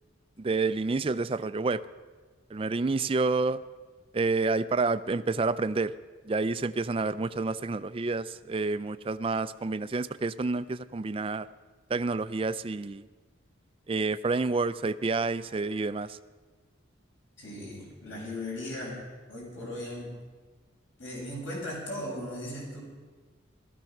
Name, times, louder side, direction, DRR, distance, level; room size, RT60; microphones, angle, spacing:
voice 1, 0.4-1.8 2.5-3.6 4.1-5.9 6.3-11.5 11.9-13.1 13.9-16.2, right 3 dB, 25° right, 13 dB, 0.4 m, -29 dB
voice 2, 17.4-20.1 21.0-22.8, left 1 dB, 65° left, -3 dB, 6.9 m, -37 dB
17.5 x 13.5 x 5.9 m, 1.4 s
head